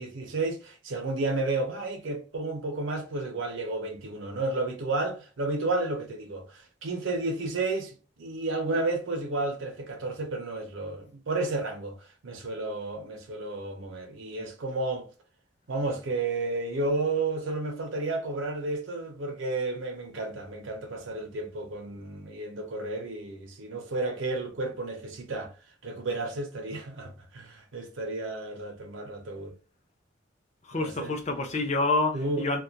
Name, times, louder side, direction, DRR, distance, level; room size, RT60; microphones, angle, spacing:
voice 1, 0.0-12.0 12.2-15.1 15.7-25.5 25.8-29.5 30.8-31.1 32.1-32.5, right 2 dB, 85° right, 0.6 m, -32 dB
voice 2, 30.7-32.6, left 2 dB, 35° left, 0.5 m, -27 dB
2.3 x 2.1 x 2.7 m
head